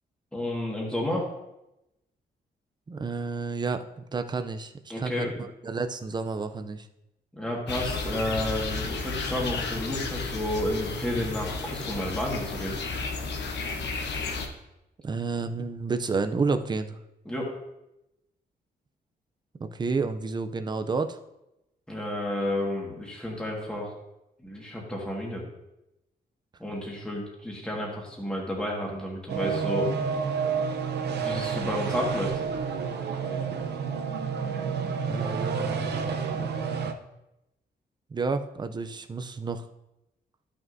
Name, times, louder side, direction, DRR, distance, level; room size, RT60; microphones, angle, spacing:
voice 1, 0.3-1.3 4.9-5.4 7.4-12.8 17.2-17.5 21.9-23.9 24.4-25.4 26.6-29.9 31.0-32.4, left 1 dB, 5° left, -3 dB, 1.7 m, -31 dB
voice 2, 2.9-6.9 14.1-14.5 15.0-17.0 19.6-21.2 35.1-36.1 38.1-39.7, right 4 dB, 25° right, 9 dB, 0.4 m, -31 dB
sound 1, 7.7-14.5, left 4 dB, 80° left, 1.0 m, -32 dB
sound 2, 29.3-36.9, right 6 dB, 75° right, 0.7 m, -29 dB
13.0 x 6.1 x 2.6 m, 0.91 s
wide cardioid pair, 165°, 18 cm